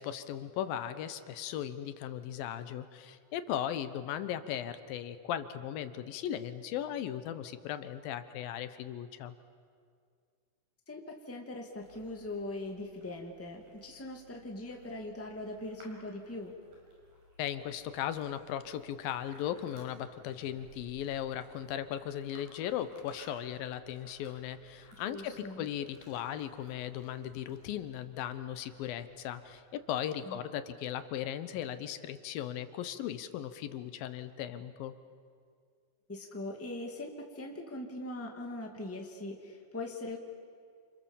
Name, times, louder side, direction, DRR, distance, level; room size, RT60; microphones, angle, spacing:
voice 1, 0.0-9.3 17.4-34.9, left 10 dB, 85° left, 11 dB, 2.8 m, -37 dB
voice 2, 10.9-16.5 25.0-25.7 30.3-30.4 36.1-40.2, left 2 dB, 5° left, 1 dB, 1.7 m, -41 dB
sound 1, 11.7-29.6, left 1 dB, 85° right, 7.5 m, -60 dB
28.5 x 27.0 x 7.3 m, 2.2 s
omnidirectional pair, 4.0 m